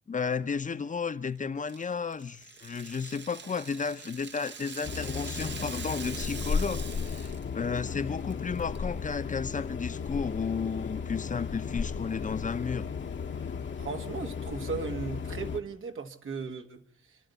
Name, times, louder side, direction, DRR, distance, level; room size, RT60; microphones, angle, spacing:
voice 1, 0.1-12.9, left 5 dB, 40° left, 0.8 m, -33 dB
Rattle (instrument), 1.7-7.5 7.8-7.9 8.3-8.8, right 6 dB, 60° right, 1.0 m, -44 dB
sound 1, 4.8-15.6, left 6 dB, 65° left, 1.3 m, -35 dB
voice 2, 13.8-17.2, right 5 dB, 80° right, 1.7 m, -37 dB
27.5 x 12.0 x 8.3 m
wide cardioid pair, 100°, 20 cm